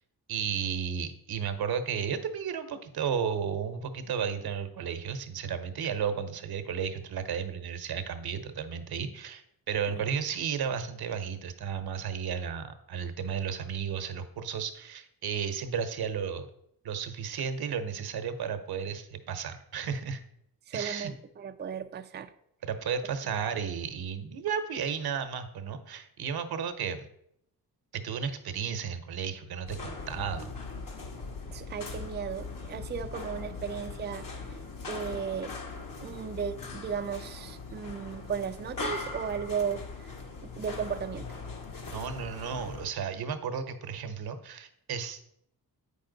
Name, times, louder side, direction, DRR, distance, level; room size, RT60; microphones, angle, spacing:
voice 1, 0.3-16.5 16.8-20.2 20.7-21.1 22.6-27.0 27.9-30.5 41.9-45.3, right 7 dB, 70° right, 9 dB, 1.0 m, -33 dB
voice 2, 20.7-22.3 31.5-34.6 34.9-35.6 36.0-40.1 40.4-41.3, right 7 dB, 30° right, 8 dB, 0.4 m, -35 dB
sound 1, 29.7-42.9, left 3 dB, 55° left, 1.6 m, -40 dB
8.4 x 5.6 x 3.9 m, 0.74 s
cardioid pair, 80°, 38 cm